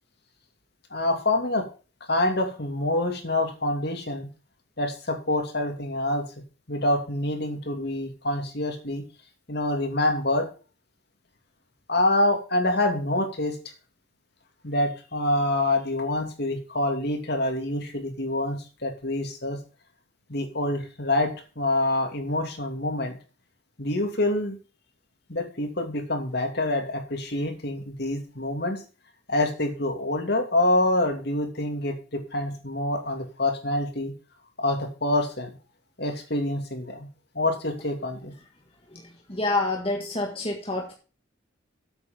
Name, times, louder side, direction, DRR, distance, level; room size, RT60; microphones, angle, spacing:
voice 1, 0.9-1.6 2.1-4.3 4.8-6.2 6.7-9.0 9.5-10.5 11.9-13.6 14.6-19.6 20.3-23.2 23.8-24.6 25.3-28.8 29.3-34.1 34.6-35.5 36.0-37.1 37.3-38.3, left 1 dB, 50° left, 4 dB, 2.6 m, -26 dB
voice 2, 39.3-40.9, left 2 dB, 25° left, 1 dB, 1.8 m, -27 dB
8.6 x 8.3 x 5.4 m, 0.34 s
head